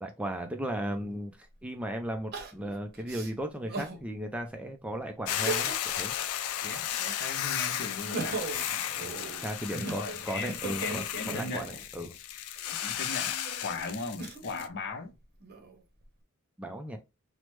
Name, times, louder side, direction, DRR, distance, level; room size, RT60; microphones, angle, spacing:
voice 1, 0.0-1.4 1.6-6.1 9.0-9.1 9.4-12.1 16.6-17.0, right 1 dB, 5° right, 0.3 m, -36 dB
Crying sobbing, 1.0-1.1 2.3-4.0 4.5-4.6 5.3-6.0 6.4-7.4 7.9-11.9 12.6-14.6 15.2-16.0, right 3 dB, 50° right, 0.7 m, -39 dB
Hiss / Boiling, 5.3-14.7, left 10 dB, 85° left, 0.4 m, -34 dB
voice 2, 7.2-8.4 9.7-11.7 12.8-13.3 13.6-15.2, left 3 dB, 55° left, 0.7 m, -37 dB
3.1 x 2.0 x 3.0 m
head